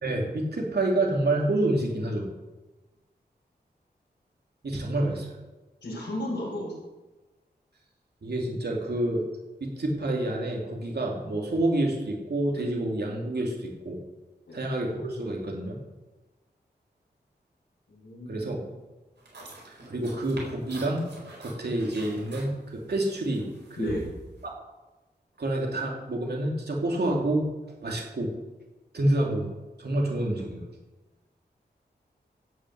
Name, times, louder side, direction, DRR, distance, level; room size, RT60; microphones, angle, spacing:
voice 1, 0.0-2.3 4.6-5.3 8.2-9.2 9.6-14.0 14.5-15.8 18.3-18.6 19.9-21.0 21.4-23.9 24.4-24.5 25.4-27.5 27.8-28.3 28.9-29.5 29.8-30.6, right 1 dB, 65° right, -1 dB, 2.8 m, -28 dB
voice 2, 5.8-6.7 14.5-14.6 18.0-18.4 23.8-24.0, left 1 dB, 90° left, -5 dB, 4.9 m, -33 dB
sound 1, 19.2-24.5, right 2 dB, 85° right, 4.5 m, -46 dB
16.0 x 6.2 x 8.0 m, 1.1 s
wide cardioid pair, 80°, 18 cm